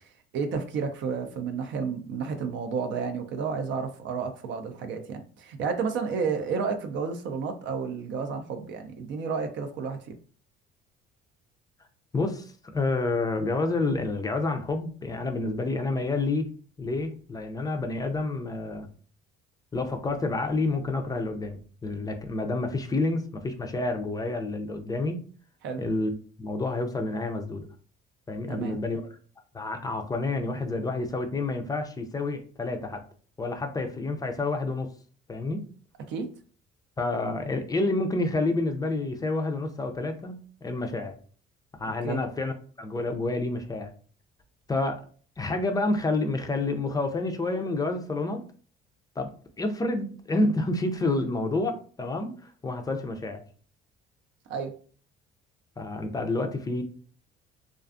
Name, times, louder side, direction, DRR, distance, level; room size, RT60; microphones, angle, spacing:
voice 1, 0.3-10.2 25.6-25.8 28.5-28.8 36.1-36.3 42.0-42.2 54.5-54.7, right 5 dB, 65° right, 6 dB, 0.5 m, -31 dB
voice 2, 12.1-16.5 16.8-18.9 19.7-25.2 25.8-26.1 26.4-27.7 28.3-29.0 29.5-33.0 33.4-34.9 35.3-35.7 37.0-41.2 41.8-43.9 44.7-45.0 45.4-48.4 49.2-49.3 49.6-53.4 55.8-56.8, left 2 dB, 20° left, 5 dB, 0.4 m, -29 dB
2.4 x 2.3 x 2.4 m, 0.42 s
cardioid pair, 100°, 21 cm